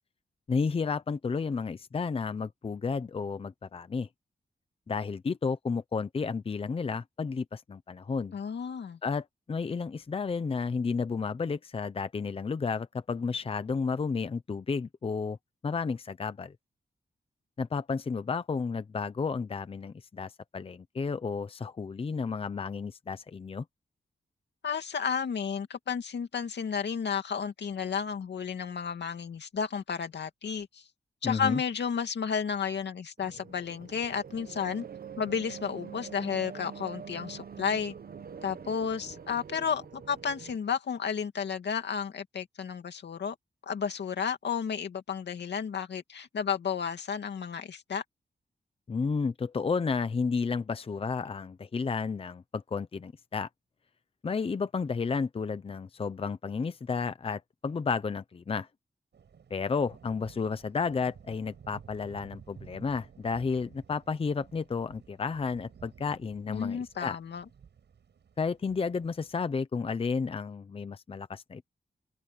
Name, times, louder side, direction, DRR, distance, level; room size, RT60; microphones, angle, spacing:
voice 1, 0.5-4.1 4.9-8.3 9.0-15.4 15.6-16.5 17.6-23.6 31.2-31.6 48.9-53.5 54.2-58.7 59.5-67.2 68.4-71.6, left 5 dB, 35° left, 0.7 m, -32 dB
voice 2, 8.3-9.0 24.6-30.8 31.2-34.8 35.2-37.9 38.4-43.3 43.7-48.0 66.5-67.4, left 7 dB, 90° left, 2.4 m, -32 dB
sound 1, 33.2-40.6, right 7 dB, 60° right, 1.1 m, -45 dB
sound 2, 59.1-69.4, right 7 dB, 90° right, 7.1 m, -54 dB
wide cardioid pair, 180°, 17 cm